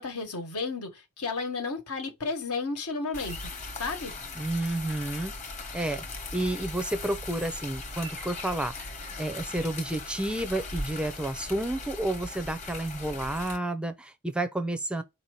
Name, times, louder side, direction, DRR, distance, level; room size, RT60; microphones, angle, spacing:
voice 1, 0.0-3.5 3.8-4.1, left 4 dB, 80° left, 1.2 m, -33 dB
sound 1, 3.1-13.6, left 3 dB, 35° left, 1.0 m, -39 dB
voice 2, 4.4-5.3 5.7-6.0 6.3-8.9 9.2-15.0, right 1 dB, 5° right, 0.4 m, -30 dB
4.4 x 2.8 x 3.0 m
head